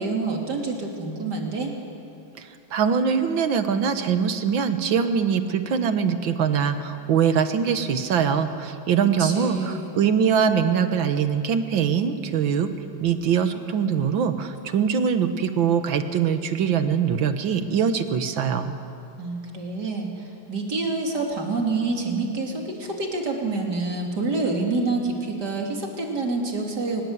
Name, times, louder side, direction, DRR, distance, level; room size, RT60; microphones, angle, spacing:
voice 1, 0.0-1.7 9.2-9.9 19.2-27.0, right 3 dB, 55° right, 1 dB, 3.4 m, -27 dB
voice 2, 2.4-12.7 13.0-18.7, right 7 dB, 75° right, 9 dB, 2.0 m, -23 dB
23.0 x 20.5 x 8.0 m, 2.6 s
omnidirectional pair, 2.1 m